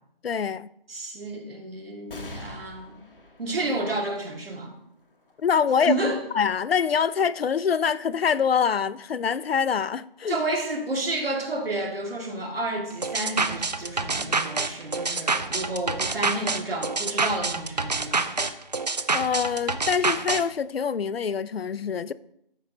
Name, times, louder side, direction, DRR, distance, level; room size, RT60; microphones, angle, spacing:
voice 1, 0.2-0.7 5.4-6.0 6.3-10.4 19.1-22.1, left 7 dB, 85° left, 0.5 m, -25 dB
voice 2, 0.9-2.9 3.4-4.7 5.8-6.2 10.3-18.2, right 2 dB, 75° right, 2.2 m, -30 dB
sound 1, 2.1-9.0 9.6-9.7 10.8-11.4, left 1 dB, 65° left, 1.6 m, -48 dB
sound 2, 13.0-20.4, right 3 dB, 45° right, 0.5 m, -27 dB
13.0 x 5.2 x 2.9 m
figure-of-eight pair, 175°, 29 cm